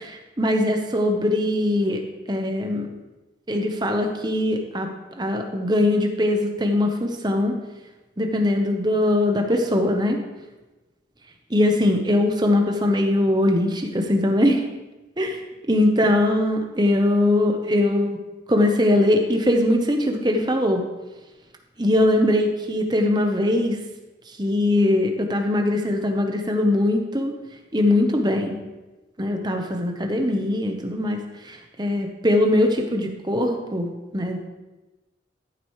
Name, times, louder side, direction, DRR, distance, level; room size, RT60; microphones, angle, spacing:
voice 1, 0.0-2.0 2.3-2.9 3.5-4.9 5.2-7.5 8.2-10.2 11.5-14.6 15.2-15.4 15.7-18.2 18.5-20.8 21.8-23.8 24.4-27.3 27.7-28.6 29.2-31.2 31.4-34.4, left 1 dB, 20° right, 3 dB, 1.0 m, -21 dB
14.0 x 8.0 x 3.2 m, 1.1 s
head